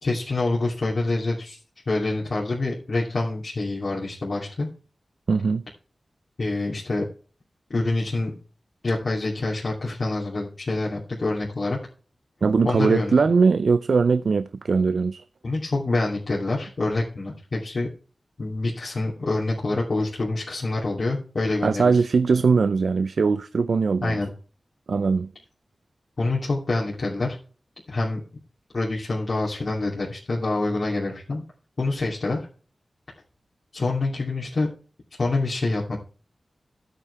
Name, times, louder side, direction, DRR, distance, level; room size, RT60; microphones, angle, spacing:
voice 1, 0.0-1.6 1.9-4.7 6.4-7.0 7.7-8.3 8.8-11.8 12.6-13.1 15.4-17.9 18.4-21.9 24.0-24.3 26.2-27.4 27.9-28.2 28.7-31.4 31.8-32.4 33.7-34.7 35.2-36.0, left 2 dB, 60° left, 2.8 m, -26 dB
voice 2, 5.3-5.6 12.4-15.2 21.6-24.2 24.9-25.3, right 4 dB, 80° right, 0.4 m, -20 dB
12.0 x 9.1 x 3.4 m
wide cardioid pair, 100°, 0 cm